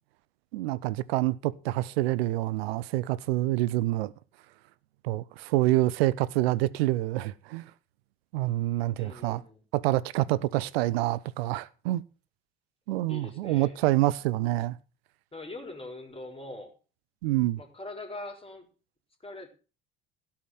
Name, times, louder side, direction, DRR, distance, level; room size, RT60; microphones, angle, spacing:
voice 1, 0.5-4.1 5.0-7.7 8.3-9.4 9.7-12.0 12.9-14.8 17.2-17.6, right 17 dB, 75° right, 0.7 m, -27 dB
voice 2, 9.0-9.6 13.0-13.8 15.3-16.7 17.6-18.7 19.2-19.5, left 2 dB, 20° left, 4.2 m, -42 dB
16.5 x 5.8 x 6.4 m
hypercardioid pair, 60°, 31 cm